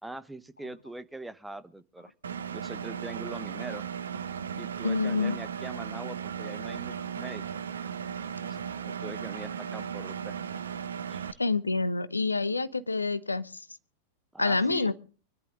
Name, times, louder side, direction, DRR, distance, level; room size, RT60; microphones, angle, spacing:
voice 1, 0.0-2.1 2.5-3.9 4.6-7.4 8.4-10.4 11.1-11.4 14.3-14.9, right 2 dB, 5° right, 12 dB, 1.0 m, -42 dB
Engine, 2.2-11.3, right 7 dB, 70° right, 0.8 m, -36 dB
voice 2, 4.8-5.4 11.4-13.7 14.4-14.9, left 3 dB, 80° left, 14 dB, 0.9 m, -27 dB
24.5 x 11.0 x 3.7 m, 0.40 s
figure-of-eight pair, 90°, 0 cm